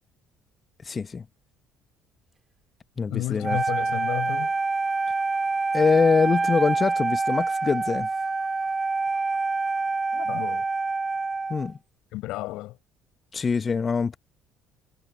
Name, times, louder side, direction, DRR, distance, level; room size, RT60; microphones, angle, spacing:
voice 1, 0.8-1.2 3.0-3.6 5.7-8.1 11.5-11.8 13.3-14.2, left 5 dB, 35° left, 1.1 m, -24 dB
voice 2, 3.1-4.6 10.1-10.7 12.1-12.8, left 18 dB, 65° left, 5.4 m, -32 dB
Wind instrument woodwind instrument, 3.4-11.7, right 3 dB, 25° right, 5.8 m, -26 dB
hypercardioid pair, 55°, 0 cm